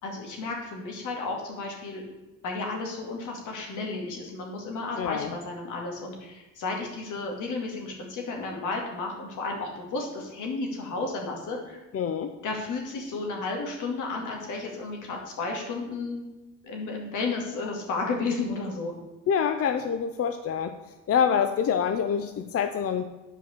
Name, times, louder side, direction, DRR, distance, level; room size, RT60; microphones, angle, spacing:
voice 1, 0.0-2.0 2.4-11.8 12.4-16.3 16.6-18.9, left 3 dB, 85° left, 1 dB, 2.3 m, -33 dB
voice 2, 5.0-5.3 11.9-12.3 19.3-20.8 21.1-23.0, left 7 dB, 50° left, 8 dB, 0.6 m, -26 dB
8.8 x 4.9 x 6.7 m, 1.1 s
cardioid pair, 90°, 30 cm